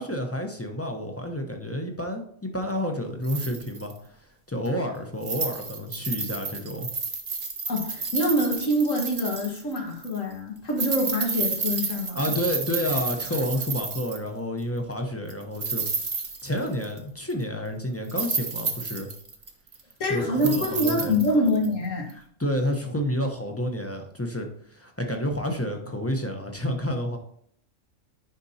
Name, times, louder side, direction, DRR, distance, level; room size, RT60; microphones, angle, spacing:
voice 1, 0.0-4.2 4.5-6.9 12.1-15.9 16.4-19.1 20.1-21.2 22.1-27.2, equal, 15° left, 3 dB, 0.8 m, -30 dB
sound 1, 3.2-3.9 4.7-4.8 5.2-9.8 10.0-10.2 10.7-14.3 15.3-17.0 17.3-17.4 18.0-19.9 20.4-21.7 22.1-22.2, right 4 dB, 40° right, 1.1 m, -31 dB
voice 2, 7.7-12.2 20.0-22.1, equal, 80° left, 0 dB, 2.0 m, -25 dB
10.0 x 5.3 x 2.8 m, 0.65 s
omnidirectional pair, 1.3 m